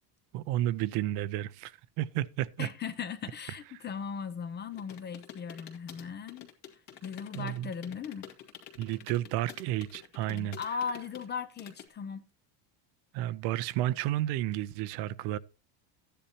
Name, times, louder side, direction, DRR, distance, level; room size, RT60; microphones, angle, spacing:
voice 1, 0.3-2.7 3.7-3.8 7.3-7.7 8.8-10.6 13.1-15.4, right 14 dB, 55° right, 0.6 m, -32 dB
voice 2, 2.6-6.5 7.0-8.3 10.3-12.2, left 6 dB, 20° left, 0.6 m, -38 dB
sound 1, 4.7-11.9, left 10 dB, 55° left, 2.2 m, -49 dB
13.5 x 10.0 x 2.8 m
cardioid pair, 155°, 49 cm